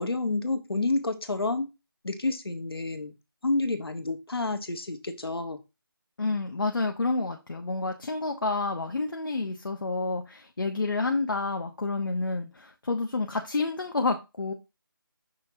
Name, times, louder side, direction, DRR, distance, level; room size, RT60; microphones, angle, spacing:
voice 1, 0.0-1.7 2.0-3.1 3.4-5.6, left 2 dB, 85° left, 7 dB, 1.4 m, -29 dB
voice 2, 6.2-14.5, left 3 dB, 65° left, 3 dB, 1.1 m, -29 dB
6.5 x 5.9 x 2.8 m, 0.25 s
figure-of-eight pair, 170°, 12 cm